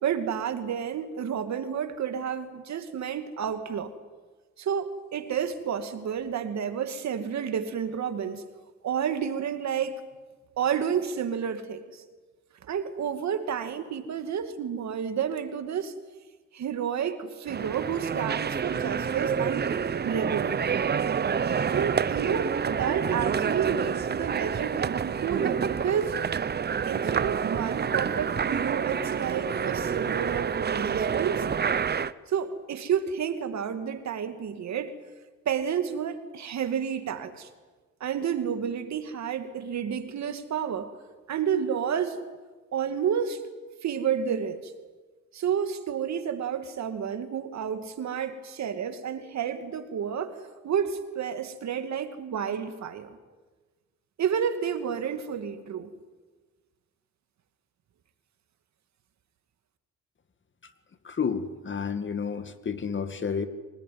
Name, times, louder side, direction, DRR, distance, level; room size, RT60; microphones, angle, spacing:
voice 1, 0.0-3.9 4.6-8.4 8.8-10.0 10.6-12.0 12.6-15.9 16.5-19.7 20.0-20.7 21.7-26.2 26.9-31.5 32.3-34.9 35.5-37.5 38.0-40.9 41.3-42.2 42.7-43.4 43.8-44.7 45.3-50.3 50.6-53.2 54.2-55.9, right 8 dB, 65° right, 8 dB, 2.4 m, -30 dB
sound 1, 17.5-32.1, right 7 dB, 35° right, 0.8 m, -28 dB
voice 2, 61.0-63.5, left 6 dB, 40° left, 10 dB, 2.0 m, -30 dB
26.0 x 19.0 x 9.5 m, 1.3 s
cardioid pair, 90°, 30 cm